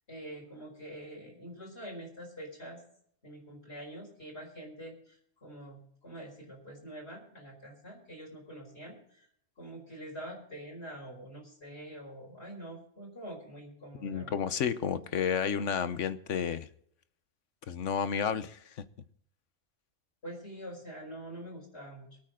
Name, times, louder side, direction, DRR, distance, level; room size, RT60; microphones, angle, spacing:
voice 1, 0.1-2.8 3.2-5.1 5.4-9.2 9.6-14.5 20.2-22.1, right 1 dB, 60° left, 5.1 m, -45 dB
voice 2, 14.0-16.7 17.7-18.8, left 7 dB, 80° left, 1.3 m, -31 dB
23.5 x 9.0 x 3.7 m
omnidirectional pair, 1.2 m